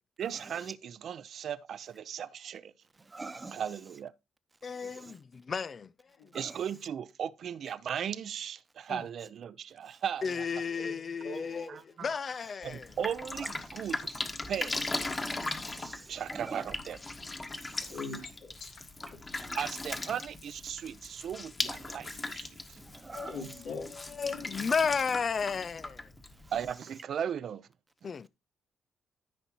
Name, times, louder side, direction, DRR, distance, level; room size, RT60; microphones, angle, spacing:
voice 1, 0.2-2.7 3.5-4.1 6.3-10.4 11.7-12.1 12.6-14.1 14.5-14.8 16.1-17.0 19.5-22.8 26.5-27.7, right 8 dB, 60° right, 0.7 m, -37 dB
voice 2, 3.1-3.6 4.8-5.1 6.3-6.5 15.3-16.6 17.9-18.0 22.9-23.4, right 3 dB, 25° right, 1.0 m, -44 dB
voice 3, 4.6-5.9 6.2-6.3 8.9-9.0 10.2-11.7 12.0-12.9 23.1-23.6 23.8-26.1 28.0-28.3, left 5 dB, 40° left, 0.4 m, -33 dB
voice 4, 11.2-11.8 17.8-19.2 23.3-23.9 24.2-24.4, left 3 dB, 80° left, 3.6 m, -41 dB
Drip, 12.6-26.7, left 2 dB, 25° left, 1.5 m, -39 dB
13.5 x 5.4 x 3.0 m
cardioid pair, 90°, 0 cm